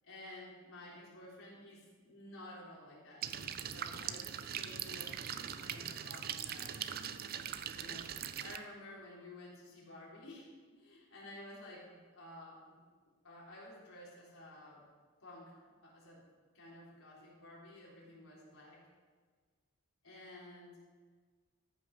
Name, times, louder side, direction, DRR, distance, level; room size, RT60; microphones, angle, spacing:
voice 1, 0.0-6.8 7.5-12.8 13.2-14.8 15.2-16.2 16.5-18.8 20.0-20.8, left 1 dB, 75° left, -6 dB, 3.8 m, -53 dB
sound 1, 3.2-8.6, right 9 dB, 45° right, 0.4 m, -41 dB
14.5 x 5.7 x 5.4 m, 1.5 s
head